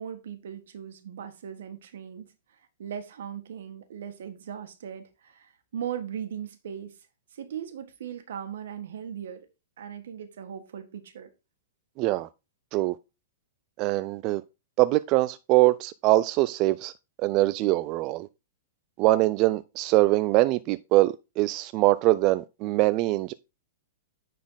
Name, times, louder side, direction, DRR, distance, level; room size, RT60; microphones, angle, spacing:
voice 1, 0.0-2.3 2.8-7.0 7.3-9.5 9.8-11.3, right 9 dB, 75° right, 1.6 m, -38 dB
voice 2, 12.0-12.3 12.7-12.9 13.8-14.4 14.8-16.9 17.2-18.3 19.0-23.3, right 18 dB, 35° right, 0.3 m, -23 dB
9.6 x 4.2 x 3.9 m
hypercardioid pair, 150°, 0 cm